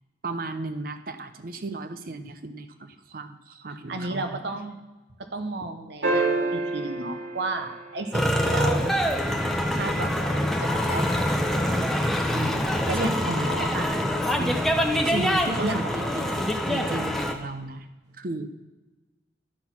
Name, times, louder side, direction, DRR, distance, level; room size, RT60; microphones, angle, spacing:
voice 1, 0.2-4.4 12.3-13.6 14.4-17.9 18.1-18.5, right 2 dB, 50° right, 10 dB, 0.6 m, -35 dB
voice 2, 3.9-4.8 5.2-8.9 9.7-11.6 12.9-13.9 15.6-16.1, right 2 dB, 70° right, 6 dB, 1.0 m, -33 dB
sound 1, 6.0-8.6 10.8-10.9, right 2 dB, 85° right, 2.7 m, -28 dB
sound 2, 8.1-17.3, equal, ahead, 0.7 m, -25 dB
11.5 x 6.1 x 5.9 m, 1.1 s
head